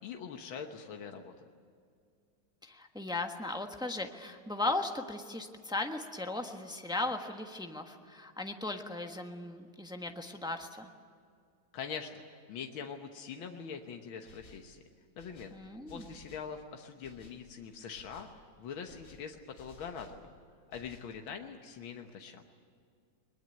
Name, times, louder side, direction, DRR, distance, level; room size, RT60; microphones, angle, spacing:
voice 1, 0.0-1.3 11.7-12.2 12.5-14.8 15.2-15.6 15.9-20.3 20.7-22.4, left 6 dB, 85° left, 4 dB, 2.0 m, -43 dB
voice 2, 2.6-10.9 15.5-16.1, left 2 dB, 5° right, 4 dB, 1.0 m, -37 dB
sound 1, 14.2-14.7 15.2-16.5 17.0-17.5 17.9-18.4 18.9-20.2 20.7-21.2, left 3 dB, 55° left, 2.6 m, -57 dB
21.5 x 21.0 x 9.3 m, 2.3 s
omnidirectional pair, 2.1 m